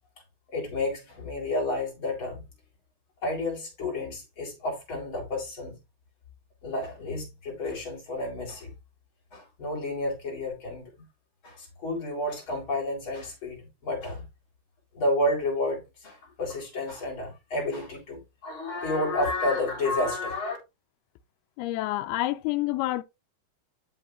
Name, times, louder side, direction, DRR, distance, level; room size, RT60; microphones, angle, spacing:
voice 1, 0.5-2.5 3.2-5.8 6.6-8.7 9.3-11.1 11.4-14.3 14.9-20.6, left 2 dB, 30° left, 4.7 m, -31 dB
voice 2, 21.6-23.0, left 16 dB, 90° left, 2.6 m, -28 dB
12.5 x 5.5 x 2.6 m
omnidirectional pair, 4.5 m